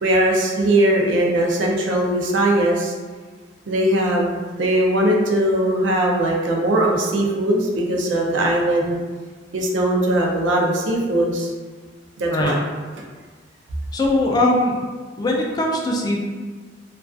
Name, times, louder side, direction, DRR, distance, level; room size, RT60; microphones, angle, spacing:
voice 1, 0.0-2.9 3.7-9.0 9.5-11.5 12.2-12.6, right 1 dB, 90° right, 0 dB, 0.4 m, -20 dB
voice 2, 13.9-14.7 15.2-16.2, left 1 dB, 20° left, -1 dB, 0.3 m, -20 dB
2.3 x 2.3 x 2.4 m, 1.4 s
head